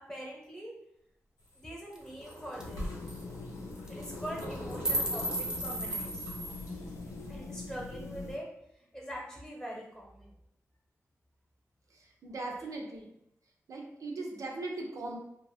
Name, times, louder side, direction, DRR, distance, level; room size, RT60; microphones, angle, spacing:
voice 1, 0.1-0.7 1.6-2.8 3.9-6.2 7.3-8.5 8.8-10.3, equal, 10° left, -2 dB, 0.8 m, -43 dB
sound 1, 1.4-7.3, equal, 90° left, 1.1 m, -44 dB
sound 2, 1.9-2.0 2.3-2.4 2.6-2.8 3.1-3.2 3.9-4.1 4.4-6.7, right 1 dB, 10° right, 0.5 m, -34 dB
sound 3, 2.6-8.4, left 3 dB, 65° left, 0.4 m, -43 dB
voice 2, 11.9-13.1 13.7-15.2, right 2 dB, 75° right, 1 dB, 0.5 m, -39 dB
2.3 x 2.1 x 3.2 m, 0.79 s
cardioid pair, 70°, 6 cm